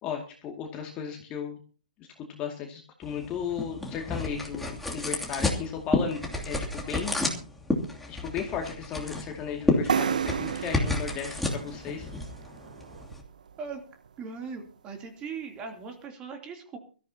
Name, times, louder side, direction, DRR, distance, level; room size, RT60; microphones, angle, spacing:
voice 1, 0.0-1.6 2.3-7.2 8.1-12.1, left 7 dB, 25° left, 1 dB, 2.3 m, -35 dB
sound 1, 3.0-13.2, left 2 dB, 5° left, 2.8 m, -31 dB
sound 2, 9.9-13.5, right 7 dB, 65° right, 0.8 m, -32 dB
voice 2, 14.2-16.8, right 5 dB, 20° right, 4 dB, 3.1 m, -39 dB
23.5 x 14.5 x 2.9 m, 0.39 s
figure-of-eight pair, 130°, 5 cm